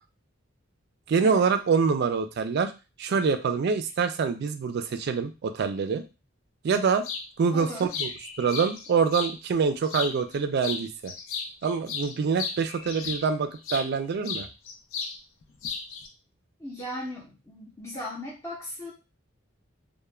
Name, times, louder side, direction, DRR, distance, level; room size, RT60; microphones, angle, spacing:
voice 1, 1.1-2.7 3.0-6.0 6.6-7.1 7.4-8.1 8.4-11.1 11.6-14.5, right 5 dB, 55° right, 9 dB, 0.3 m, -25 dB
sound 1, 7.0-7.3 7.7-9.3 9.8-10.4 10.6-13.9 14.2-15.2 15.4-16.1, left 5 dB, 90° left, 0.5 m, -35 dB
voice 2, 7.5-7.9 16.6-18.9, left 1 dB, 15° left, -6 dB, 0.6 m, -37 dB
2.2 x 2.1 x 3.1 m, 0.29 s
head